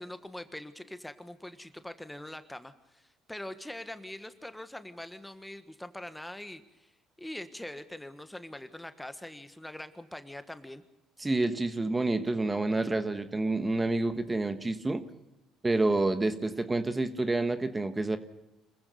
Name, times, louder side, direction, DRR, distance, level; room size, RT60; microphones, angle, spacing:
voice 1, 0.0-6.9 7.2-10.8, left 1 dB, 5° left, 10 dB, 1.4 m, -43 dB
voice 2, 11.2-15.0 15.6-18.2, right 2 dB, 15° right, 10 dB, 1.4 m, -28 dB
26.0 x 15.0 x 6.9 m, 0.97 s
supercardioid pair, 80°, 0 cm